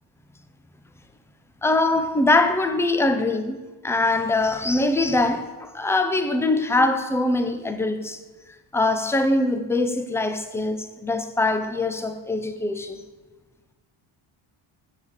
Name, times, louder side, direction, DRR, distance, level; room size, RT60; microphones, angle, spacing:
voice 1, 1.6-3.6 3.8-8.2 8.7-13.0, left 2 dB, 5° left, 0.7 m, -23 dB
7.6 x 7.1 x 8.1 m
cardioid pair, 110°, 49 cm